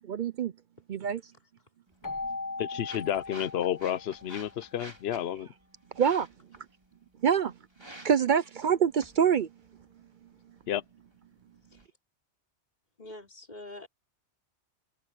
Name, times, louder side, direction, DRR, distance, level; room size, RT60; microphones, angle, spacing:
voice 1, 0.0-0.5 0.9-1.2 6.0-6.3 7.2-7.5 8.0-9.5, right 7 dB, 55° right, 0.6 m, -25 dB
sound 1, 1.9-11.9, right 1 dB, 20° right, 3.0 m, -52 dB
Keyboard (musical), 2.0-4.6, left 3 dB, 15° left, 1.1 m, -39 dB
voice 2, 2.6-5.5 10.7-10.8, left 10 dB, 65° left, 0.8 m, -31 dB
voice 3, 13.0-13.9, left 1 dB, 35° left, 4.7 m, -45 dB
omnidirectional pair, 1.2 m